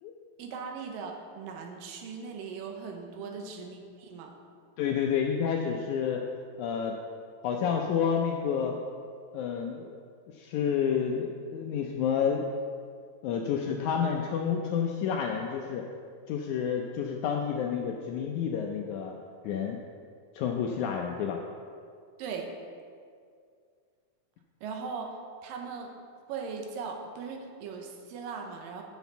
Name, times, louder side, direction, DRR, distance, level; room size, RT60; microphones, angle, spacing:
voice 1, 0.4-4.3 22.2-22.5 24.6-25.9 26.3-28.8, right 5 dB, 80° right, 3 dB, 2.6 m, -39 dB
voice 2, 4.8-6.2 6.6-7.0 7.4-8.8 9.3-10.0 10.3-12.5 13.2-15.9 16.3-19.1 19.4-19.8 20.3-21.4, left 7 dB, 80° left, 2 dB, 1.7 m, -29 dB
8.1 x 6.2 x 6.8 m, 2.2 s
omnidirectional pair, 4.0 m